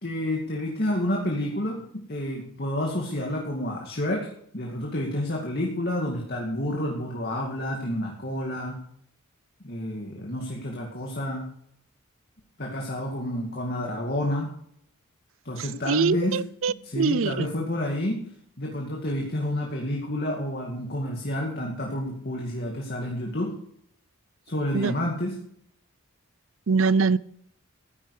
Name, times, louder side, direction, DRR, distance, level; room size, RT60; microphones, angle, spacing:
voice 1, 0.0-4.3 4.5-8.8 9.6-11.5 12.6-14.5 15.4-16.4 16.8-18.2 18.6-23.5 24.5-25.3, left 1 dB, 45° left, -1 dB, 2.3 m, -29 dB
voice 2, 15.6-17.5 24.7-24.9 26.7-27.2, right 5 dB, 65° right, 19 dB, 0.5 m, -24 dB
14.5 x 10.5 x 4.9 m, 0.69 s
head